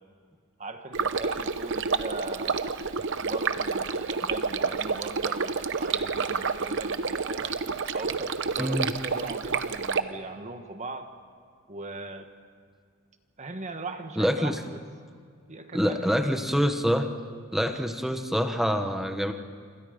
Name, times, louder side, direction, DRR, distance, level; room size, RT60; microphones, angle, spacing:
voice 1, 0.6-2.7 3.2-7.6 7.9-11.1 11.7-12.3 13.4-14.8 15.5-16.2, right 2 dB, 30° right, 7 dB, 1.4 m, -39 dB
Stream, 0.9-10.0, right 5 dB, 55° right, 0.9 m, -29 dB
voice 2, 14.2-14.6 15.7-17.1 17.5-19.3, equal, ahead, 6 dB, 1.1 m, -26 dB
27.0 x 26.5 x 5.2 m, 2.1 s
head